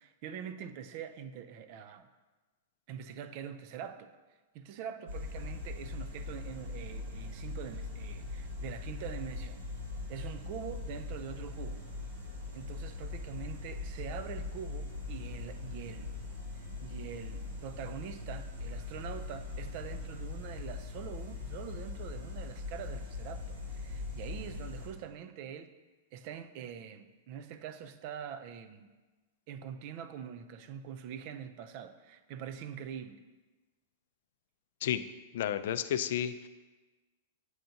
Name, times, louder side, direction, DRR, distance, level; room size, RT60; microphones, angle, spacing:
voice 1, 0.0-2.1 2.9-4.1 4.5-9.6 10.1-11.9 12.5-16.1 16.5-25.7 26.1-28.9 29.5-33.3, right 8 dB, 40° right, 10 dB, 0.4 m, -44 dB
sound 1, 5.1-24.9, left 3 dB, 85° right, 1.8 m, -41 dB
voice 2, 35.3-36.5, left 10 dB, 60° left, 12 dB, 0.3 m, -31 dB
7.7 x 2.6 x 5.7 m, 1.2 s
supercardioid pair, 165°, 0 cm